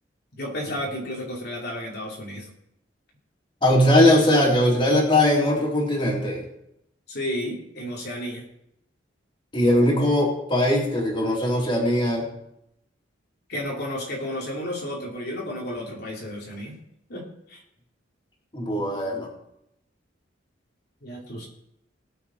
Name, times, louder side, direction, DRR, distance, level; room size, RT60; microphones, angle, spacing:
voice 1, 0.4-2.5 7.1-8.4 13.5-16.8 17.1-17.6 21.0-21.5, left 1 dB, 60° left, -3 dB, 2.8 m, -32 dB
voice 2, 3.6-6.4 9.5-12.3 18.5-19.3, left 1 dB, 25° left, -3 dB, 3.6 m, -20 dB
20.0 x 7.7 x 4.3 m, 0.79 s
head